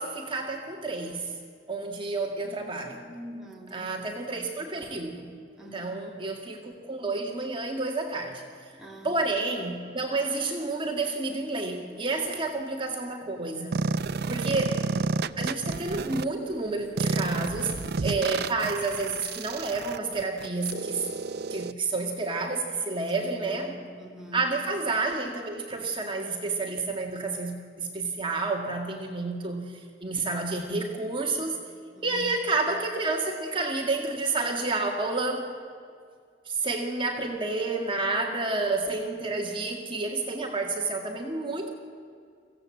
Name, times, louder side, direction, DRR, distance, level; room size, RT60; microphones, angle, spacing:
voice 1, 0.0-1.3 1.7-3.0 3.7-5.3 5.7-8.4 9.0-13.9 14.3-14.8 15.4-17.7 18.0-21.1 21.5-23.7 24.3-31.6 32.0-35.5 36.5-41.7, right 3 dB, 30° right, 1 dB, 1.9 m, -30 dB
voice 2, 2.4-4.5 5.6-6.2 8.7-9.1 14.2-14.4 23.2-24.5 32.0-32.3, equal, 5° right, -1 dB, 2.4 m, -45 dB
sound 1, 13.7-16.2 17.0-21.7, right 4 dB, 60° right, 0.5 m, -30 dB
25.0 x 16.5 x 7.7 m, 2.2 s
head